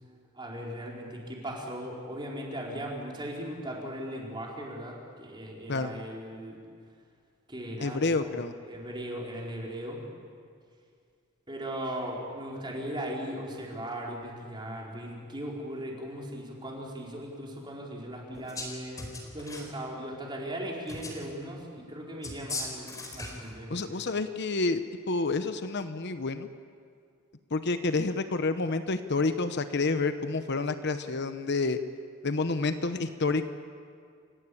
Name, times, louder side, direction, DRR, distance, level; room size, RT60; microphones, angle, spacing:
voice 1, 0.3-6.6 7.5-8.4 8.7-10.0 11.5-19.0 19.3-23.9, equal, 20° right, -3 dB, 4.6 m, -38 dB
voice 2, 7.8-8.5 23.7-26.5 27.5-31.8 32.2-33.5, left 3 dB, 50° left, 9 dB, 0.9 m, -29 dB
sound 1, 18.3-18.7 19.0-19.7 20.9-21.3 22.2-23.5, left 2 dB, 15° left, 4.2 m, -38 dB
29.0 x 16.0 x 8.6 m, 2.2 s
head